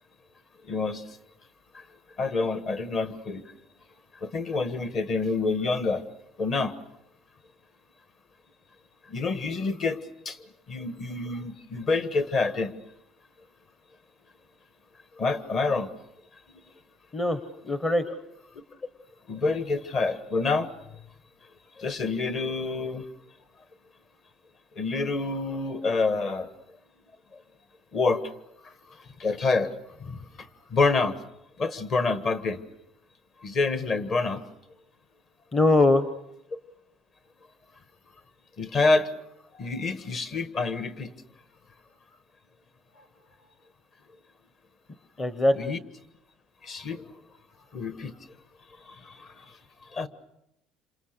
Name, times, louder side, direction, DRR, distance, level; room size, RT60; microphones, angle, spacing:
voice 1, 0.7-1.0 2.2-3.4 4.2-6.0 6.4-6.7 9.1-10.0 10.2-10.4 10.7-12.7 15.2-15.9 18.1-18.2 19.3-20.7 21.8-23.0 24.8-26.5 27.9-28.2 29.2-29.7 30.0-30.3 30.7-31.2 31.6-32.6 33.4-34.4 38.6-39.1 39.6-41.1 45.5-45.8 46.6-47.0 47.7-48.1 49.0-49.3 49.9-50.1, left 3 dB, 35° left, 11 dB, 1.5 m, -27 dB
voice 2, 17.6-18.0 35.5-36.1 45.2-45.7, left 2 dB, 20° left, 10 dB, 1.0 m, -22 dB
28.0 x 27.0 x 6.7 m, 0.82 s
cardioid pair, 170°, 0 cm